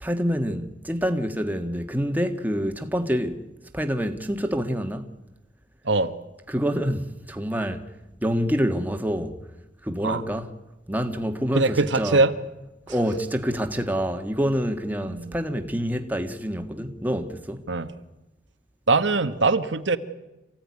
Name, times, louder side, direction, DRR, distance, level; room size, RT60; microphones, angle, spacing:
voice 1, 0.0-3.4 3.7-5.1 6.5-7.8 8.2-9.4 9.8-10.5 10.9-12.2 12.9-17.6, equal, 10° right, 1.7 m, -27 dB
voice 2, 11.5-12.3 15.1-15.3 17.7-17.9 18.9-20.0, right 3 dB, 85° right, 1.4 m, -22 dB
27.0 x 16.0 x 9.7 m
head